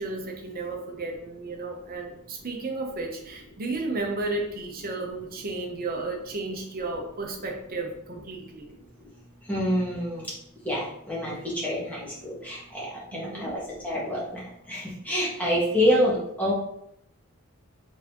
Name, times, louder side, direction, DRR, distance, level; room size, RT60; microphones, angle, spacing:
voice 1, 0.0-8.7 13.1-13.6, right 3 dB, 40° right, 1 dB, 0.8 m, -33 dB
voice 2, 9.5-10.2 10.6-11.3 11.6-12.9 13.1-14.2 14.7-16.5, equal, 5° left, -6 dB, 1.4 m, -26 dB
4.0 x 3.6 x 2.9 m, 0.77 s
head